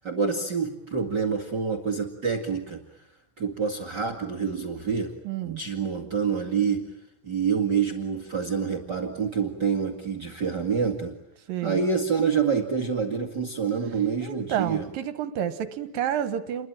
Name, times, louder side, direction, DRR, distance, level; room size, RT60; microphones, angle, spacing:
voice 1, 0.0-2.8 3.4-5.1 5.4-6.9 7.2-11.2 11.6-14.9, right 6 dB, 35° right, 5 dB, 2.3 m, -27 dB
voice 2, 5.2-5.6 11.5-11.8 14.2-16.7, right 10 dB, 75° right, 11 dB, 2.9 m, -29 dB
29.5 x 22.5 x 9.0 m, 0.80 s
omnidirectional pair, 4.1 m